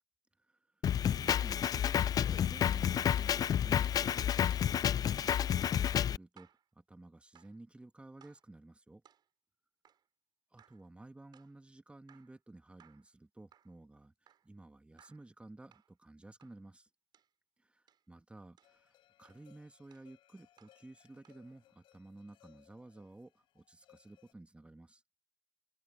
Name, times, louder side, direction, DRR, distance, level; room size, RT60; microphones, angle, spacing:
Drum kit, 0.8-6.2, left 9 dB, 45° left, 0.4 m, -30 dB
voice 1, 1.0-6.5 6.8-9.0 10.5-14.1 14.4-16.9 17.6-25.0, right 2 dB, 15° right, 2.5 m, -54 dB
sound 1, 6.3-6.7 7.3-7.6 8.2-8.5 9.0-9.3 9.8-10.1 10.6-10.9 11.3-11.6 12.1-12.4 12.8-13.1 13.5-13.8 14.3-14.5 15.0-15.3 15.7-15.9 16.4-16.6 17.1-17.3 17.9-18.1 18.6-18.8 19.2-19.5 19.9-20.1 20.6-20.8 21.2-21.5, right 9 dB, 55° right, 6.2 m, -66 dB
sound 2, 18.6-24.3, left 14 dB, 70° left, 6.2 m, -67 dB
supercardioid pair, 75°, 9 cm